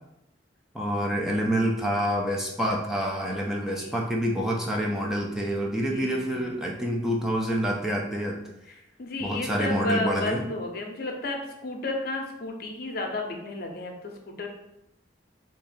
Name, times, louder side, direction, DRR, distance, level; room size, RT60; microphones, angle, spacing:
voice 1, 0.7-8.4 9.2-10.4, equal, 5° right, -2 dB, 0.4 m, -27 dB
voice 2, 3.7-4.0 5.7-6.5 8.7-14.5, left 2 dB, 55° left, 2 dB, 0.6 m, -33 dB
2.8 x 2.6 x 4.0 m, 0.86 s
head